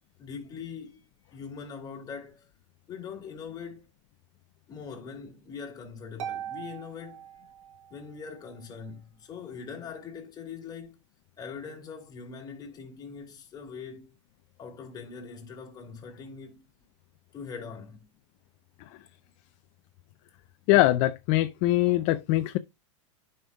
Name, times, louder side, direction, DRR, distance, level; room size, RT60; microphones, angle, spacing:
voice 1, 0.2-1.0 1.3-2.5 2.9-3.9 4.7-7.4 7.9-11.0 11.4-14.1 14.6-16.6 17.3-18.1, left 6 dB, 25° left, 2.3 m, -42 dB
Harp, 6.2-8.1, right 10 dB, 75° right, 1.1 m, -40 dB
voice 2, 20.7-22.6, left 16 dB, 45° left, 0.5 m, -22 dB
11.0 x 5.5 x 2.3 m
hypercardioid pair, 130°, 16 cm